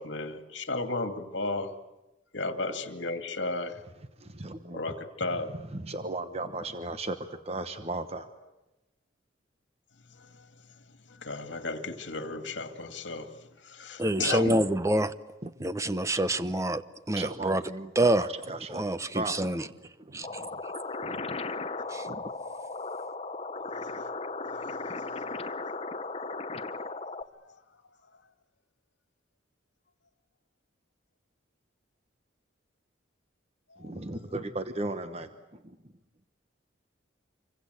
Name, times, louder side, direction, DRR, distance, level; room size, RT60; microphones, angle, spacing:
voice 1, 0.0-1.7 2.3-3.8 4.7-5.5 10.2-10.3 11.1-13.3 13.6-14.6 23.8-23.9, left 3 dB, 70° left, 8 dB, 2.2 m, -34 dB
voice 2, 4.2-4.8 5.4-7.2 7.4-8.3 15.4-15.5 17.2-18.8 19.1-19.4 20.0-20.6 21.0-21.2 22.0-22.2 33.8-35.8, right 2 dB, 35° right, 9 dB, 1.1 m, -36 dB
voice 3, 14.0-15.1 15.6-16.8 17.1-17.6 18.0-18.3 18.7-19.6 20.1-20.3 21.9-22.1, right 1 dB, 15° right, 13 dB, 0.8 m, -26 dB
sound 1, 20.2-27.2, left 3 dB, 30° left, 0.9 m, -36 dB
27.0 x 24.5 x 8.1 m, 1.0 s
head